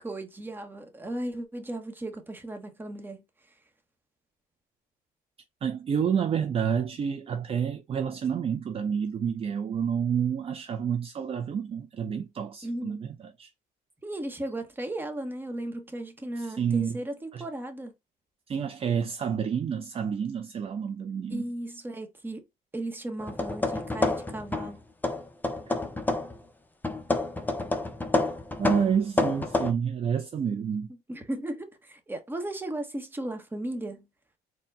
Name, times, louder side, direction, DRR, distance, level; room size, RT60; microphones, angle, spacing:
voice 1, 0.0-3.2 12.6-13.0 14.0-17.9 21.3-22.4 22.7-24.8 31.1-34.1, right 1 dB, 10° right, 0.9 m, -36 dB
voice 2, 5.6-13.5 16.4-17.0 17.3-17.4 18.5-21.5 28.6-30.9, right 7 dB, 35° right, 0.4 m, -29 dB
sound 1, 23.2-24.8 25.0-26.4 26.8-29.7, left 2 dB, 10° left, 0.6 m, -28 dB
4.4 x 2.2 x 3.7 m
cardioid pair, 110°, 17 cm